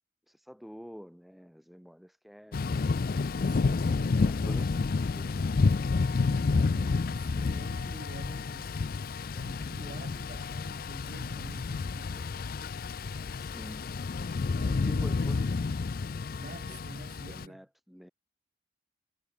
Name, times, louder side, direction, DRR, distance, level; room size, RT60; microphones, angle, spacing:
voice 1, 0.3-2.7 3.5-3.8 4.2-5.6 13.3-13.9 14.5-15.8 16.7-16.8 17.3-18.1, equal, ahead, 1.4 m, -49 dB
Thunder / Rain, 2.5-17.4, left 4 dB, 55° left, 0.5 m, -30 dB
voice 2, 3.4-4.2 6.1-8.8 9.3-12.4 14.6-15.4 16.3-17.7, right 1 dB, 50° right, 2.6 m, -48 dB
head